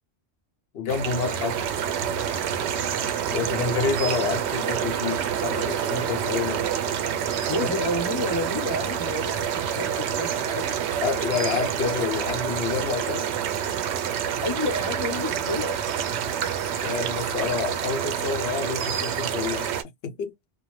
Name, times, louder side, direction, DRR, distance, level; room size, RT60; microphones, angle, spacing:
voice 1, 0.7-1.6 3.3-6.6 7.6-7.9 11.0-13.3 16.7-19.7 20.0-20.3, left 6 dB, 65° left, 0.9 m, -29 dB
sound 1, 0.9-19.8, right 8 dB, 80° right, 0.9 m, -27 dB
voice 2, 3.4-3.9 7.5-10.8 14.4-15.8, left 1 dB, 30° left, 0.7 m, -30 dB
2.6 x 2.2 x 3.0 m
omnidirectional pair, 1.1 m